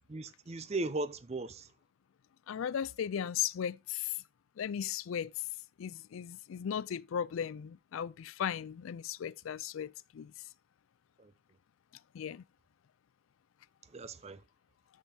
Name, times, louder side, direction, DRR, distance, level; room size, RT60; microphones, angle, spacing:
voice 1, 0.1-1.7 11.2-11.3 13.9-14.4, right 2 dB, 30° right, 0.5 m, -37 dB
voice 2, 2.5-4.2 4.6-5.3 5.8-10.3 12.1-12.4, left 8 dB, 80° left, 0.4 m, -36 dB
10.5 x 7.3 x 2.8 m
head